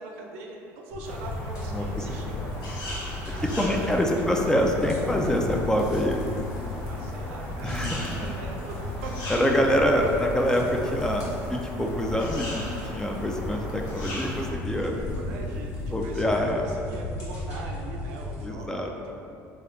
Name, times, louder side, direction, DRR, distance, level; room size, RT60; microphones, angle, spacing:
voice 1, 0.0-4.0 4.3-4.4 6.8-9.1 14.5-19.1, right 3 dB, 85° right, 0 dB, 0.4 m, -42 dB
sound 1, 0.9-18.4, left 2 dB, 55° left, 1.2 m, -35 dB
sound 2, 1.0-14.5, equal, 80° left, 0.9 m, -38 dB
voice 2, 1.7-2.2 3.6-6.2 7.6-8.1 9.3-14.9 15.9-16.6 18.4-18.9, equal, 10° left, 1 dB, 0.3 m, -25 dB
sound 3, 3.5-16.2, equal, 5° right, 0.8 m, -44 dB
3.1 x 2.3 x 3.0 m, 2.6 s
supercardioid pair, 80°, 7 cm